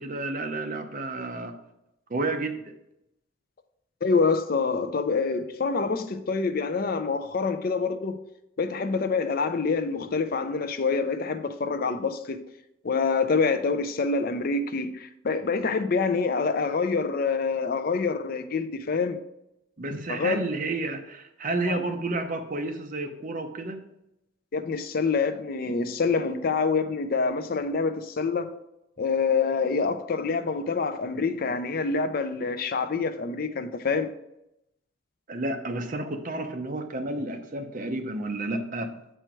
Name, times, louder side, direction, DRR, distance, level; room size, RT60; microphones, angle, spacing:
voice 1, 0.0-1.6 2.1-2.6 19.8-23.8 35.3-38.9, right 2 dB, 40° right, 0.7 m, -31 dB
voice 2, 4.0-8.2 8.6-12.4 12.8-19.2 20.1-20.4 21.7-21.8 24.5-28.5 29.0-34.1, left 4 dB, 45° left, 0.4 m, -26 dB
7.8 x 4.5 x 4.5 m
head